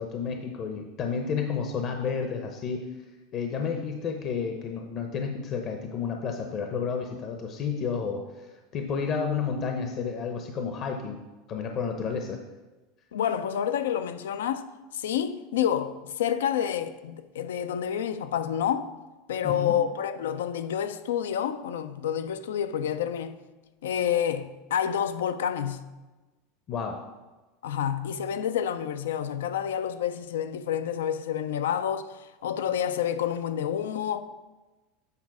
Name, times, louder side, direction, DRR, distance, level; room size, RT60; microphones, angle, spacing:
voice 1, 0.0-2.9 3.3-8.5 8.7-11.2 11.5-12.4 19.4-19.7 26.7-27.0, left 6 dB, 45° left, 0.7 m, -31 dB
voice 2, 13.1-14.7 14.9-18.9 19.3-23.4 23.8-25.8 27.6-34.2, left 9 dB, 85° left, 0.4 m, -28 dB
8.4 x 4.2 x 4.8 m
hypercardioid pair, 105°, 0 cm